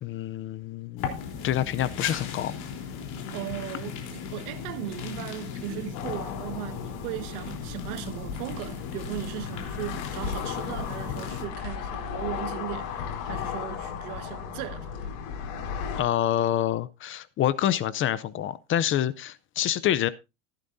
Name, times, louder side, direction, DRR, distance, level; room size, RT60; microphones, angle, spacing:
voice 1, 0.0-2.5 16.0-20.1, left 11 dB, 30° left, 0.5 m, -27 dB
sound 1, 1.0-11.5, left 7 dB, 55° left, 3.6 m, -37 dB
voice 2, 3.3-15.1, right 15 dB, 80° right, 1.6 m, -37 dB
sound 2, 5.9-16.0, left 7 dB, 80° left, 4.9 m, -36 dB
15.0 x 12.0 x 2.6 m
supercardioid pair, 145°, 44 cm